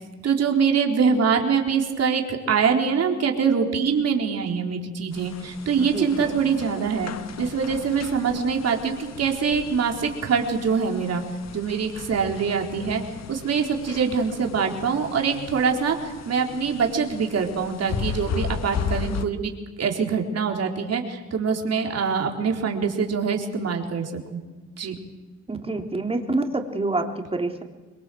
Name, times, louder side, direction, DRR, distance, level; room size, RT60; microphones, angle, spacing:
voice 1, 0.2-7.1 7.4-11.2 11.5-13.0 13.3-19.5 19.8-24.4 24.8-25.0, right 6 dB, 55° right, 3 dB, 4.1 m, -24 dB
sound 1, 5.1-19.3, left 7 dB, 60° left, 1.6 m, -36 dB
voice 2, 5.8-6.4 25.5-27.6, right 2 dB, 20° right, 4 dB, 3.5 m, -27 dB
25.5 x 22.0 x 7.9 m, 1.3 s
cardioid pair, 90°, 30 cm